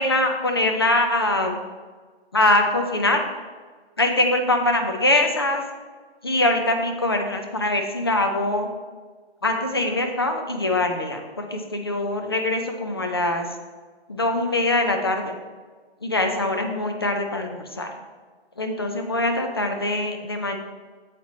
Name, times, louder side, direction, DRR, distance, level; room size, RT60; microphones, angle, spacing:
voice 1, 0.0-1.6 2.3-3.2 4.0-5.6 6.2-8.7 9.4-13.4 14.1-15.3 16.0-17.9 18.6-20.6, left 2 dB, 25° left, 4 dB, 0.4 m, -23 dB
8.2 x 7.4 x 3.1 m, 1.4 s
hypercardioid pair, 165°, 32 cm